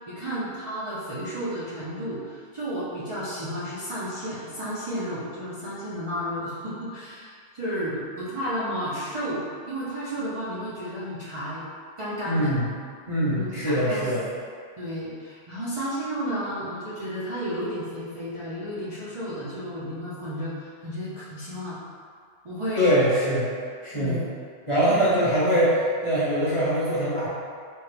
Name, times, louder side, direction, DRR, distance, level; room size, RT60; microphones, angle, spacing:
voice 1, 0.1-11.6 12.0-12.6 13.2-14.1 14.8-21.8 22.4-22.9 23.9-24.2, equal, 40° right, -11 dB, 0.5 m, -32 dB
voice 2, 12.3-12.7 13.1-14.3 22.8-23.5 23.8-24.2 24.7-27.3, equal, 30° left, -10 dB, 0.8 m, -23 dB
4.3 x 2.3 x 3.2 m, 2.1 s
omnidirectional pair, 1.2 m